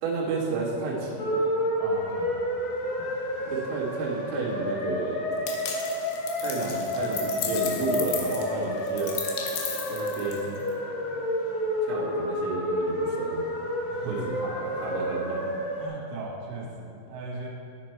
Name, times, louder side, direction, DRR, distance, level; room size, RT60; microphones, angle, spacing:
voice 1, 0.0-1.4 3.4-5.3 6.4-9.2 9.9-10.6 11.8-13.4 14.1-15.4, right 3 dB, 55° right, -8 dB, 1.9 m, -31 dB
sound 1, 1.2-15.9, equal, 65° left, 3.2 m, -30 dB
voice 2, 1.8-2.5 3.0-3.5 13.9-14.5 15.8-17.5, right 2 dB, 75° right, -3 dB, 3.4 m, -39 dB
sound 2, 5.5-10.7, left 7 dB, 85° left, 2.3 m, -35 dB
10.0 x 6.0 x 4.5 m, 2.6 s
omnidirectional pair, 5.6 m